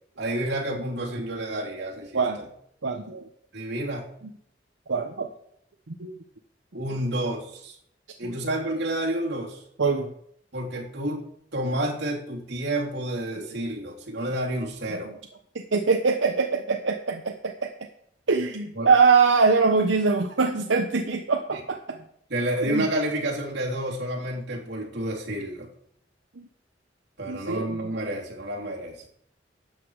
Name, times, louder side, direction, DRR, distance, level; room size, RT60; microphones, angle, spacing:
voice 1, 0.2-2.2 3.5-4.1 6.7-7.8 8.2-9.6 10.5-11.2 11.5-15.1 18.7-18.9 22.3-25.7 27.2-29.0, right 1 dB, 65° right, -2 dB, 3.2 m, -29 dB
voice 2, 2.8-3.3 4.9-5.3 5.9-6.1 6.9-7.0 8.2-8.4 9.8-10.1 15.5-17.7 18.3-22.0 22.6-22.9 26.4-26.5 27.3-27.9, right 4 dB, 90° right, 4 dB, 0.9 m, -23 dB
12.0 x 8.4 x 4.8 m, 0.68 s
head